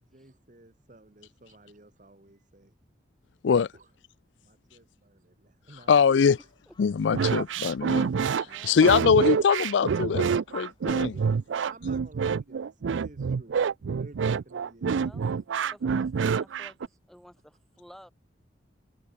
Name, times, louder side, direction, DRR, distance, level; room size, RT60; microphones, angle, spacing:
voice 1, 0.0-2.7 3.7-4.0 4.4-6.5 6.9-7.1 8.4-9.3 10.0-10.5 10.9-13.6 14.0-15.4, right 2 dB, 45° right, 1.7 m, -54 dB
Gull seagull, 5.7-11.5, left 2 dB, 25° left, 6.1 m, -66 dB
voice 2, 5.9-6.4 6.8-10.3 10.5-11.1, left 6 dB, 80° left, 0.4 m, -23 dB
sound 1, 7.1-16.9, right 6 dB, 85° right, 0.4 m, -27 dB
voice 3, 8.4-9.0 14.9-15.3 15.7-18.1, equal, ahead, 7.5 m, -53 dB
head